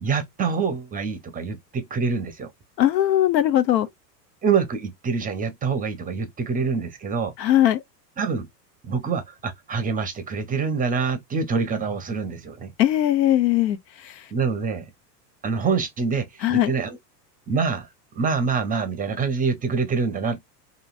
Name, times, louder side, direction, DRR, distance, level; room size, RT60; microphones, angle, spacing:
voice 1, 0.0-2.5 4.4-7.3 8.2-8.5 8.8-12.7 14.3-14.9 15.4-17.0 17.5-17.9 18.2-20.4, right 5 dB, 20° right, 0.5 m, -25 dB
voice 2, 2.8-3.9 7.4-7.8 12.8-14.2 16.4-16.7, left 12 dB, 85° left, 0.7 m, -20 dB
2.9 x 2.6 x 2.4 m
hypercardioid pair, 105°, 50 cm